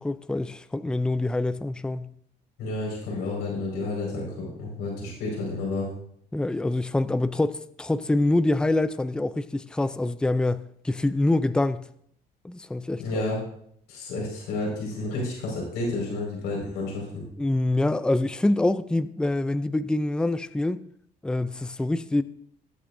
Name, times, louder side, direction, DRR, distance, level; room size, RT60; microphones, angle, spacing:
voice 1, 0.0-2.1 6.3-11.9 12.4-13.2 17.4-20.8 21.2-22.2, left 2 dB, 5° left, 0.4 m, -25 dB
voice 2, 2.6-5.9 13.0-13.4 13.9-17.2, left 2 dB, 90° left, 5.0 m, -30 dB
19.0 x 8.6 x 2.6 m
cardioid pair, 110°, 17 cm